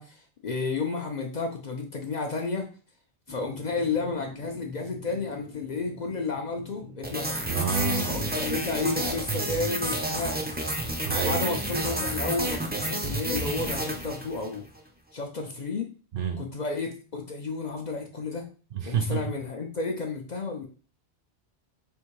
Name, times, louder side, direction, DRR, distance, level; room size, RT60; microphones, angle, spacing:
voice 1, 0.0-2.7 3.3-7.5 8.1-10.4 11.2-14.7 15.1-15.9 16.4-18.5 18.9-20.7, left 3 dB, 50° left, 2 dB, 0.6 m, -32 dB
sound 1, 3.3-14.1, left 1 dB, 10° left, 0.7 m, -47 dB
sound 2, 7.0-14.6, right 1 dB, 15° right, 0.3 m, -30 dB
voice 2, 7.5-8.2 10.9-11.5 16.1-16.5 18.7-19.3, right 7 dB, 60° right, 6 dB, 0.6 m, -29 dB
3.5 x 2.7 x 4.5 m, 0.38 s
omnidirectional pair, 1.1 m